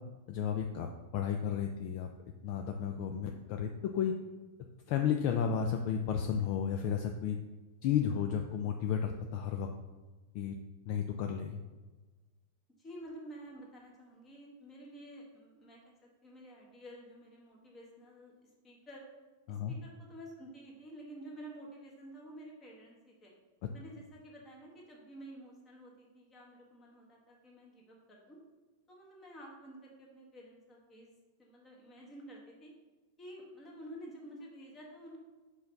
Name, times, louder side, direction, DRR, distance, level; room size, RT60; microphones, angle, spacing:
voice 1, 0.3-2.1 2.4-4.1 4.9-7.4 7.8-9.7 10.3-10.6 10.9-11.6 19.5-19.7, left 8 dB, 40° left, 4 dB, 0.4 m, -33 dB
voice 2, 12.8-18.3 18.6-19.0 19.5-23.3 23.7-28.4 28.9-31.1 31.4-32.7 33.2-35.2, right 1 dB, 15° left, -2 dB, 1.5 m, -51 dB
5.6 x 4.0 x 5.8 m, 1.2 s
supercardioid pair, 165°, 0 cm